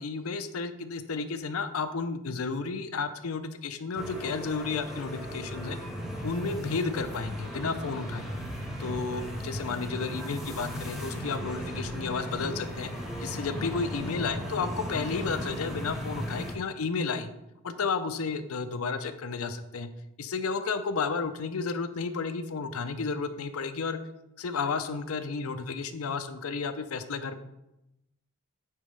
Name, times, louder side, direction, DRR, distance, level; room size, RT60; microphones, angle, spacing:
voice 1, 0.0-5.8 6.2-8.2 8.8-12.9 13.2-17.3 17.6-19.9 20.2-24.0 24.4-27.4, left 4 dB, 75° left, 10 dB, 0.5 m, -32 dB
sound 1, 4.0-16.5, equal, ahead, 1.0 m, -36 dB
9.0 x 4.0 x 3.3 m, 0.90 s
head